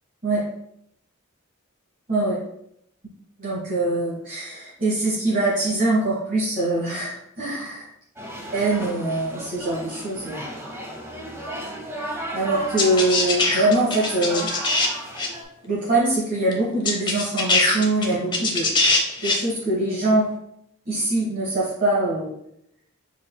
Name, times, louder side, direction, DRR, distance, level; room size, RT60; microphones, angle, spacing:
voice 1, 2.1-2.4 3.4-7.9 8.5-10.4 12.3-14.5 15.6-20.3 20.9-22.4, right 2 dB, 40° right, -7 dB, 1.3 m, -23 dB
sound 1, 8.2-15.4, equal, 10° right, 0.8 m, -35 dB
sound 2, 12.8-14.9 15.2-15.3 16.5-16.6 16.9-19.4, left 3 dB, 20° left, 0.7 m, -21 dB
6.3 x 3.7 x 2.2 m, 0.76 s
head